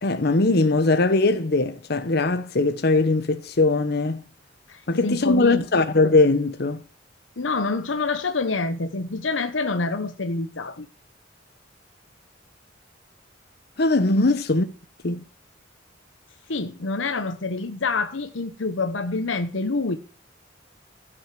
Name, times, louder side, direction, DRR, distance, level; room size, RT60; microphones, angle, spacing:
voice 1, 0.0-4.2 4.9-6.8 13.8-14.7 15.0-15.2, left 3 dB, 55° left, 0.9 m, -20 dB
voice 2, 4.7-5.6 7.4-10.9 14.1-14.3 16.5-20.0, left 3 dB, 90° left, 1.0 m, -27 dB
15.0 x 6.3 x 7.5 m
head